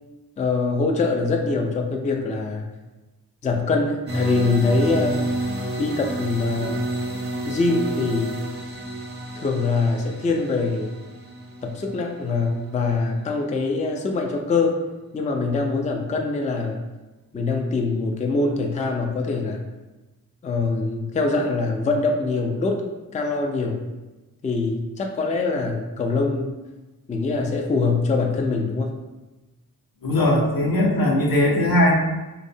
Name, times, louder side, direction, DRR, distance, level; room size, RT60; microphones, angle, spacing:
voice 1, 0.4-2.7 3.4-5.2 5.8-6.9 7.4-8.4 9.4-10.9 11.6-14.8 15.1-16.8 17.3-19.6 20.4-22.8 23.1-23.8 24.4-26.5 27.1-28.9, left 3 dB, 20° left, 2 dB, 0.3 m, -23 dB
sound 1, 4.1-12.9, right 1 dB, 30° right, 0.6 m, -30 dB
voice 2, 30.0-32.0, left 1 dB, 75° left, -1 dB, 0.7 m, -19 dB
2.6 x 2.0 x 2.6 m, 1.1 s
cardioid pair, 45°, 36 cm